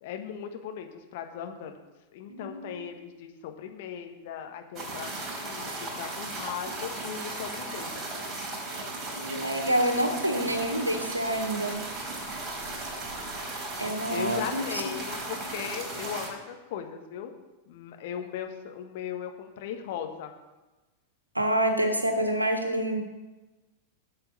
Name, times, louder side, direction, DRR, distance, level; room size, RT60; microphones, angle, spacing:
voice 1, 0.0-1.8 2.1-8.0 14.1-17.3 17.7-20.3, left 8 dB, 50° left, 5 dB, 1.5 m, -38 dB
voice 2, 2.3-2.9 9.2-11.8 13.8-14.9 21.3-23.0, right 1 dB, 85° right, 6 dB, 1.5 m, -27 dB
sound 1, 4.7-16.3, right 2 dB, 25° right, 4.5 m, -36 dB
9.0 x 7.7 x 7.1 m, 1.1 s
figure-of-eight pair, 90°, 0 cm